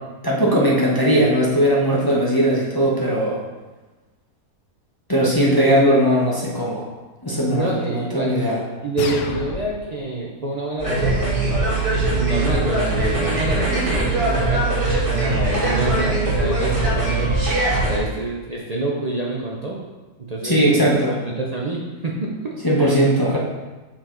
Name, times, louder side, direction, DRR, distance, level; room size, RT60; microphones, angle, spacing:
voice 1, 0.2-3.4 5.1-6.8 7.2-8.6 20.4-21.2 22.6-23.4, equal, 20° left, -5 dB, 0.7 m, -18 dB
voice 2, 7.5-11.2 12.1-17.3 17.8-19.8 20.3-22.9, right 2 dB, 55° right, -3 dB, 0.4 m, -27 dB
sound 1, 9.0-10.0, left 5 dB, 65° left, 0.8 m, -29 dB
sound 2, 10.8-18.0, right 2 dB, 20° right, 1.6 m, -21 dB
5.7 x 4.9 x 3.8 m, 1.2 s
omnidirectional pair, 1.7 m